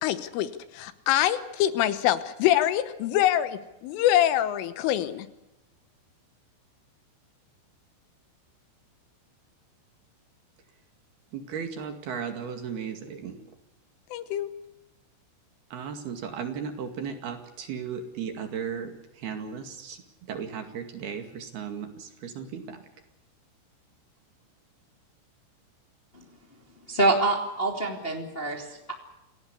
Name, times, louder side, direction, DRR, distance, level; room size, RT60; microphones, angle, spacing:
voice 1, 0.0-5.3 14.1-14.5, left 12 dB, 80° left, 13 dB, 3.5 m, -25 dB
voice 2, 11.3-13.4 15.7-22.8, right 7 dB, 55° right, 6 dB, 3.7 m, -36 dB
voice 3, 26.9-28.9, right 2 dB, 20° left, 2 dB, 1.7 m, -26 dB
28.5 x 17.0 x 8.1 m, 0.94 s
omnidirectional pair, 5.8 m